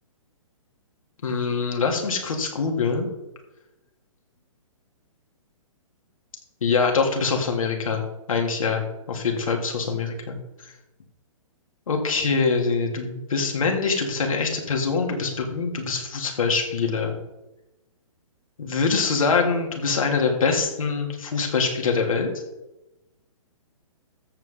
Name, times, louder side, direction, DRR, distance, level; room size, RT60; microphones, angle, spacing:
voice 1, 1.2-3.1 6.6-8.0 8.3-10.4 11.9-17.2 18.6-22.4, left 4 dB, 75° left, 2 dB, 3.2 m, -24 dB
13.5 x 8.2 x 4.0 m, 0.94 s
hypercardioid pair, 130°, 17 cm